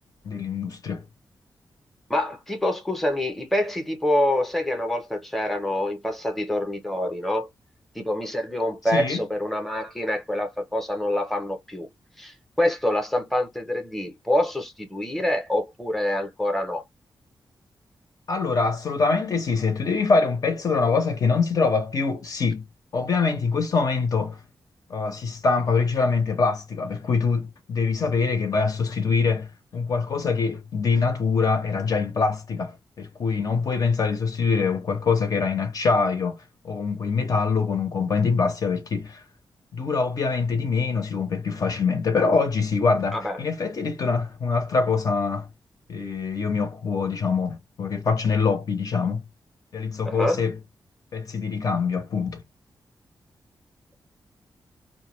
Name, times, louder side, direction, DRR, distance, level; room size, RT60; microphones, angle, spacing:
voice 1, 0.2-1.0 8.9-9.2 18.3-22.6 22.9-24.4 24.9-29.5 29.7-36.4 36.6-39.2 39.7-45.5 45.9-49.2 49.7-50.6 51.1-52.4, left 4 dB, 50° left, 0.7 m, -24 dB
voice 2, 2.1-7.5 7.9-11.9 12.2-16.8 43.1-43.4 50.1-50.4, left 1 dB, ahead, 0.7 m, -26 dB
2.2 x 2.1 x 3.0 m
wide cardioid pair, 145°, 8 cm